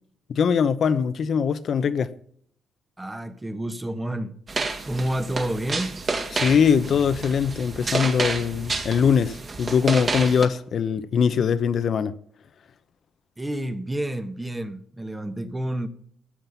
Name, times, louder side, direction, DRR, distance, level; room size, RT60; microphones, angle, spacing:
voice 1, 0.3-2.1 6.3-12.1, left 7 dB, 55° left, 0.9 m, -22 dB
voice 2, 3.0-4.3 4.8-6.0 13.4-15.9, right 1 dB, 15° right, 1.3 m, -29 dB
sound 1, 4.5-10.5, right 3 dB, 40° right, 2.6 m, -30 dB
15.0 x 7.7 x 7.0 m
cardioid pair, 90°, 0 cm